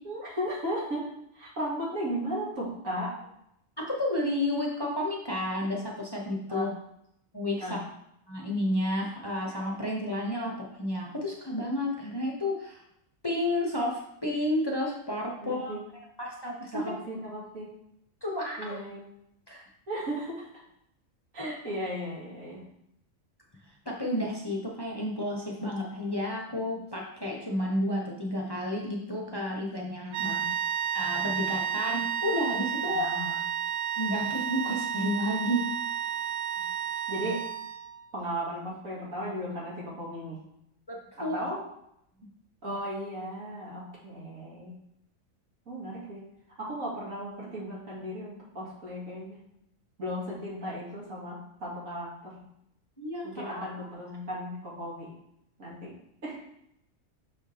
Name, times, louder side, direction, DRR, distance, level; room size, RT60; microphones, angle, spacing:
voice 1, 0.0-3.1 6.5-6.7 7.6-7.8 15.4-15.8 16.7-17.7 18.6-19.0 19.9-20.5 21.3-22.6 30.2-30.5 32.8-33.4 37.1-37.4 38.1-40.4 41.2-41.6 42.6-44.8 45.7-46.2 46.6-49.4 50.0-52.4 53.2-55.1 55.6-55.9 56.2-56.4, equal, 80° right, -5 dB, 2.7 m, -36 dB
voice 2, 3.8-6.7 7.3-7.8 8.3-10.5 10.8-12.8 13.2-15.8 16.2-16.8 18.2-18.7 19.5-19.6 21.4-21.5 23.9-30.4 30.9-33.0 34.0-35.6 40.9-41.3 53.0-53.7, left 1 dB, 20° left, -2 dB, 0.9 m, -31 dB
sound 1, 30.1-38.0, right 9 dB, 65° right, 0.7 m, -31 dB
6.4 x 6.2 x 3.4 m, 0.77 s
omnidirectional pair, 1.4 m